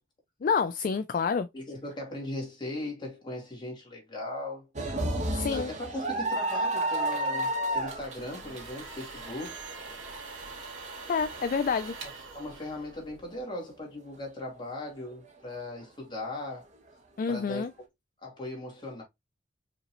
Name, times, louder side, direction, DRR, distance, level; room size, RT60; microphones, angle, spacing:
voice 1, 0.4-1.5 5.3-5.7 11.1-12.0 17.2-17.7, left 5 dB, 45° left, 0.3 m, -28 dB
voice 2, 1.5-4.7 5.5-9.5 12.0-16.7 17.3-17.7 18.2-19.0, left 1 dB, 25° left, 2.1 m, -38 dB
sound 1, 4.8-10.9 11.4-11.5 12.6-12.9, right 1 dB, 40° right, 1.0 m, -31 dB
sound 2, 7.7-13.4, right 4 dB, 80° right, 2.0 m, -44 dB
5.0 x 3.0 x 2.9 m
head